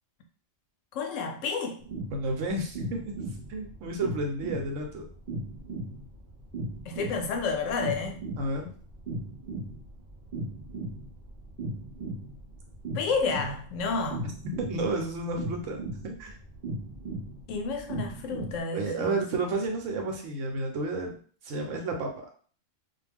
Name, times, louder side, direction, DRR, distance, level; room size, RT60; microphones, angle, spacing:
voice 1, 0.9-1.9 6.9-8.2 12.9-14.3 17.5-19.3, left 4 dB, 80° left, 0.9 m, -30 dB
sound 1, 1.8-18.6, right 2 dB, 50° right, 0.6 m, -37 dB
voice 2, 2.1-3.1 3.5-5.1 8.4-8.7 14.6-16.4 18.7-21.1 21.4-22.1, right 2 dB, 80° right, 1.0 m, -31 dB
2.4 x 2.2 x 3.3 m
omnidirectional pair, 1.3 m